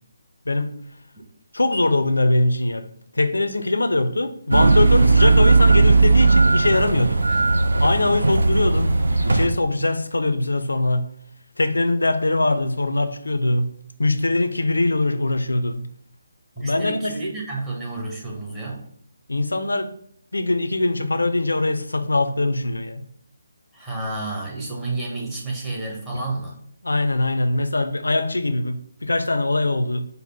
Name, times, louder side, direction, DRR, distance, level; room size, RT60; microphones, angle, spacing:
voice 1, 1.5-2.9 3.1-7.2 7.8-8.9 9.2-11.1 11.6-13.7 14.0-15.8 16.6-17.1 19.3-19.9 20.3-23.1 26.1-26.2 26.8-30.1, left 2 dB, 70° left, 9 dB, 0.5 m, -22 dB
sound 1, 4.5-9.5, right 3 dB, 65° right, 0.4 m, -17 dB
voice 2, 7.3-7.6 16.6-18.8 23.7-26.6, right 2 dB, 10° right, -5 dB, 1.0 m, -31 dB
5.3 x 2.0 x 4.2 m, 0.63 s
figure-of-eight pair, 145°, 0 cm